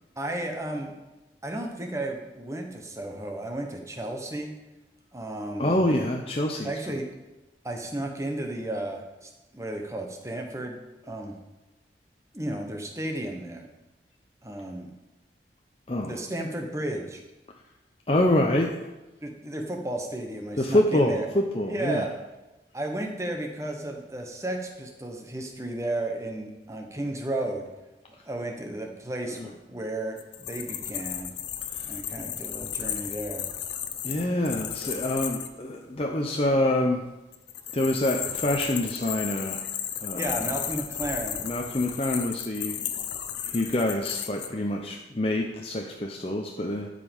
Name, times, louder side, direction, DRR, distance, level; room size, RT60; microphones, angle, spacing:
voice 1, 0.2-0.9 1.4-4.5 5.1-5.8 6.6-7.1 7.6-11.4 12.3-13.7 14.4-14.9 16.0-17.2 19.2-21.3 21.7-22.1 22.7-27.6 28.2-31.3 31.8-33.4 40.1-41.4, right 1 dB, 15° right, 2 dB, 1.2 m, -33 dB
voice 2, 5.6-6.7 15.9-16.2 18.1-18.9 20.6-22.1 29.3-29.4 31.7-31.9 34.0-37.1 37.7-39.6 40.0-40.4 41.4-42.9 43.4-46.9, left 1 dB, 35° left, 0 dB, 0.7 m, -26 dB
sound 1, 30.2-35.5 37.3-44.5, left 9 dB, 90° left, 0.8 m, -34 dB
12.0 x 5.2 x 5.4 m, 1.0 s
head